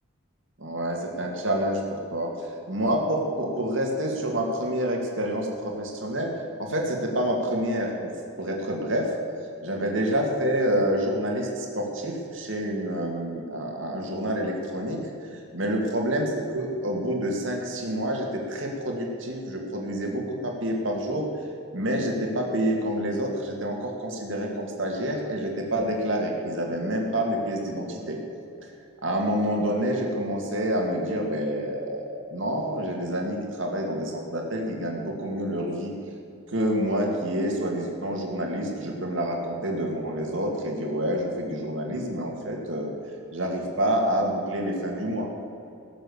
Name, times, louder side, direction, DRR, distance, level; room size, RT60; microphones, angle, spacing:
voice 1, 0.6-2.3 2.7-6.3 6.6-8.1 8.4-9.1 9.6-15.0 15.5-21.3 21.7-28.2 29.0-35.9 36.5-42.9 43.3-45.3, equal, 65° right, 0 dB, 2.4 m, -28 dB
17.5 x 7.8 x 7.1 m, 2.8 s
head